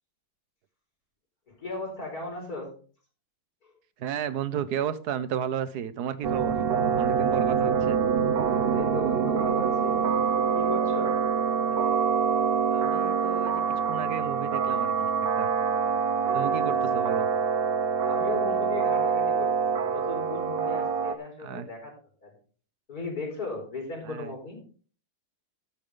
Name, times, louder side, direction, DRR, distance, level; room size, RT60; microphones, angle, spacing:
voice 1, 1.5-2.7 3.6-3.7 7.6-7.8 8.7-10.0 10.5-11.1 16.9-17.1 18.0-21.9 22.2-22.3 22.9-24.6, left 3 dB, 70° left, 0 dB, 5.1 m, -36 dB
voice 2, 4.0-6.6 7.0-8.0 11.7-11.8 12.7-13.6 13.9-15.1 15.4-15.5 16.3-17.3 21.4-21.7 24.0-24.3, right 9 dB, 90° right, 14 dB, 1.4 m, -33 dB
sound 1, 6.2-21.2, right 6 dB, 50° right, 0.7 m, -25 dB
12.0 x 8.6 x 3.8 m, 0.41 s
omnidirectional pair, 1.7 m